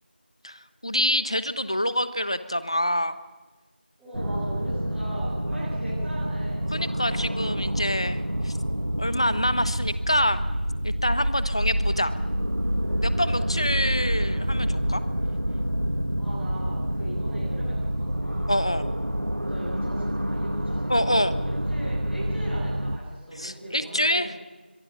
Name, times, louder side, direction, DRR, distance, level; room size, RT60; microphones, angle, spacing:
voice 1, 0.4-3.2 6.7-8.6 9.0-10.5 10.8-12.2 13.0-15.0 18.5-18.9 20.9-21.4 23.3-24.3, equal, 30° left, 13 dB, 1.1 m, -26 dB
voice 2, 4.0-6.7 13.2-13.8 16.2-18.5 19.3-24.3, right 1 dB, ahead, -18 dB, 2.2 m, -39 dB
sound 1, 4.1-23.0, equal, 85° right, 2.2 m, -27 dB
25.0 x 23.0 x 7.2 m, 1.2 s
figure-of-eight pair, 175°, 6 cm